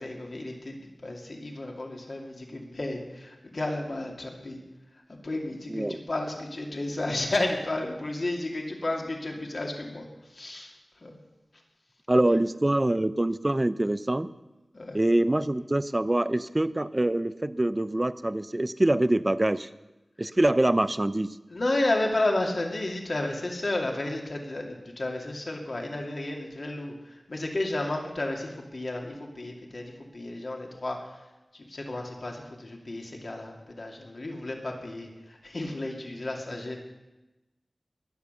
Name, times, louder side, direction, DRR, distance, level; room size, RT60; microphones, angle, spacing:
voice 1, 0.0-4.6 5.1-10.1 10.3-10.7 11.0-11.2 12.3-12.4 14.7-15.0 21.5-31.1 31.5-36.8, left 2 dB, 55° left, 1 dB, 2.5 m, -32 dB
voice 2, 5.7-6.0 12.1-14.3 14.9-19.7 20.2-21.4, right 1 dB, 25° right, 15 dB, 0.5 m, -25 dB
20.0 x 7.2 x 6.9 m, 1.1 s
wide cardioid pair, 55°, 0 cm